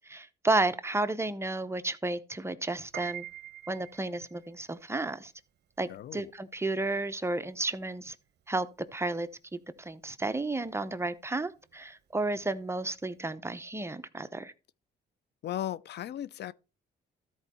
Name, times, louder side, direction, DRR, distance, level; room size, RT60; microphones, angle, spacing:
voice 1, 0.1-3.3 3.7-5.3 5.8-8.2 8.5-14.5, right 2 dB, 15° right, 0.7 m, -32 dB
Piano, 2.8-13.2, right 12 dB, 55° right, 0.8 m, -48 dB
voice 2, 5.9-6.3 15.4-16.5, left 12 dB, 60° left, 0.4 m, -36 dB
13.0 x 4.5 x 4.2 m
cardioid pair, 90°, 20 cm